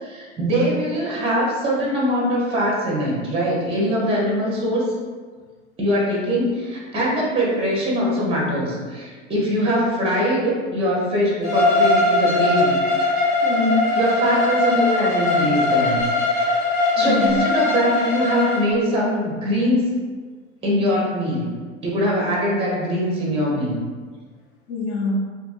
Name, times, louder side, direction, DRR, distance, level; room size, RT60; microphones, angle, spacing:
voice 1, 0.0-4.8 5.8-12.8 13.1-13.4 14.0-16.0 16.3-16.5 17.0-19.9 20.6-21.5 21.8-23.8, equal, 15° right, -4 dB, 0.7 m, -22 dB
voice 2, 3.9-4.3 13.4-13.9 17.0-17.5 24.7-25.2, left 3 dB, 35° left, -2 dB, 0.5 m, -25 dB
Bowed string instrument, 11.4-18.6, left 2 dB, 85° left, 0.8 m, -20 dB
2.7 x 2.5 x 2.4 m, 1.5 s
hypercardioid pair, 100°, 41 cm